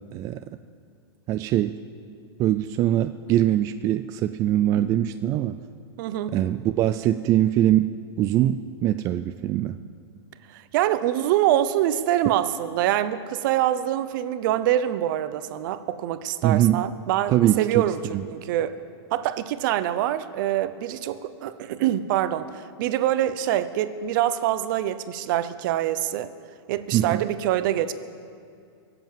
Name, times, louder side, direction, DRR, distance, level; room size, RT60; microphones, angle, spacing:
voice 1, 1.3-1.8 2.4-5.6 6.3-7.9 8.2-9.8 16.4-16.8 17.3-17.8 18.1-18.2 26.9-27.2, right 12 dB, 25° right, 10 dB, 0.3 m, -22 dB
voice 2, 6.0-6.4 10.5-18.8 19.1-26.3 26.7-27.9, right 12 dB, 50° right, 13 dB, 0.8 m, -25 dB
23.0 x 8.0 x 7.5 m, 2.4 s
hypercardioid pair, 150°, 14 cm